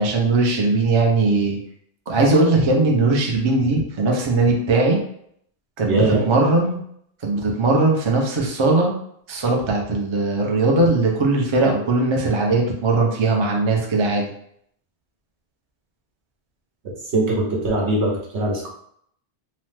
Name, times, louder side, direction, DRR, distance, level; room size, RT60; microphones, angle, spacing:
voice 1, 0.0-1.6 2.1-5.0 5.8-6.8 7.2-9.0 9.3-14.3, right 3 dB, 40° right, 0 dB, 0.4 m, -19 dB
voice 2, 5.8-6.3 16.8-18.7, right 1 dB, 75° right, -1 dB, 1.1 m, -22 dB
2.8 x 2.1 x 3.2 m, 0.68 s
omnidirectional pair, 1.2 m